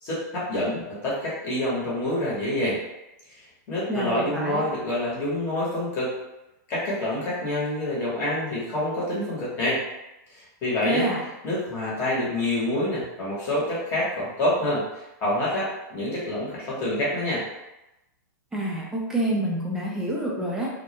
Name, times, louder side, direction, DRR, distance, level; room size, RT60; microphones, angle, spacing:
voice 1, 0.0-2.8 3.7-6.1 6.7-9.8 10.3-11.1 11.4-14.8 15.2-17.4, left 1 dB, 25° left, -7 dB, 0.8 m, -27 dB
voice 2, 3.9-4.6 10.8-11.2 18.5-20.7, right 1 dB, 5° right, -3 dB, 0.3 m, -27 dB
2.2 x 2.0 x 2.7 m, 0.94 s
supercardioid pair, 165°, 10 cm